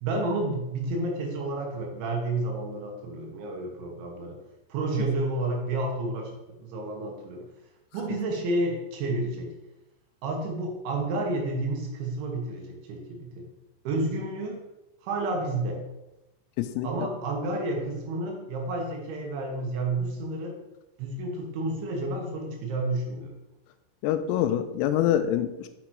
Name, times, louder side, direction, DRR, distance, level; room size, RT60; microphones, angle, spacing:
voice 1, 0.0-4.4 4.7-6.3 6.6-7.4 7.9-9.5 10.2-13.4 13.8-14.6 15.0-15.8 16.8-20.6 21.0-23.3, right 2 dB, 70° right, 1 dB, 3.4 m, -30 dB
voice 2, 16.6-16.9 24.0-25.7, left 11 dB, 90° left, 9 dB, 3.4 m, -25 dB
7.5 x 6.1 x 4.6 m, 0.94 s
omnidirectional pair, 6.0 m